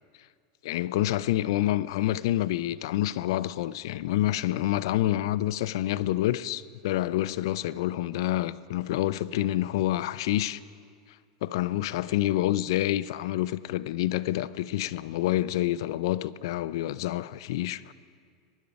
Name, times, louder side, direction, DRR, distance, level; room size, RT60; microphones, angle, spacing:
voice 1, 0.6-10.6 11.4-17.9, left 14 dB, 70° left, 0.4 m, -28 dB
16.5 x 10.5 x 5.2 m
supercardioid pair, 135°, 3 cm